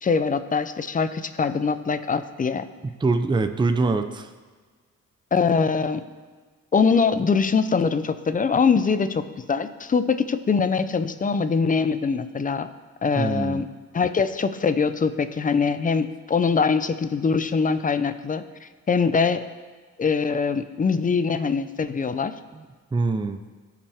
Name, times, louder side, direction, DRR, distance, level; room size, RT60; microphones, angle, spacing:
voice 1, 0.0-2.6 5.3-6.0 6.7-9.2 9.5-12.7 13.0-13.7 13.9-19.4 20.0-22.3, left 5 dB, 25° left, 12 dB, 0.6 m, -23 dB
voice 2, 2.8-4.3 13.2-13.6 22.9-23.4, right 3 dB, 15° right, 8 dB, 0.6 m, -24 dB
17.5 x 5.9 x 3.5 m, 1.4 s
cardioid pair, 90°, 30 cm